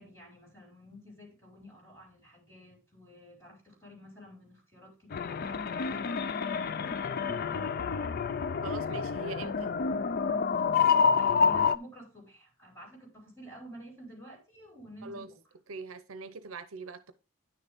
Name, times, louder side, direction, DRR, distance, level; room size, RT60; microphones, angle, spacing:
voice 1, 0.0-8.1 11.2-15.4, equal, 15° left, 4.7 m, -50 dB
sound 1, 5.1-11.8, left 6 dB, 45° left, 0.4 m, -28 dB
voice 2, 8.6-9.7 15.0-15.3 15.7-17.1, right 3 dB, 70° right, 0.7 m, -41 dB
10.0 x 6.6 x 3.5 m
head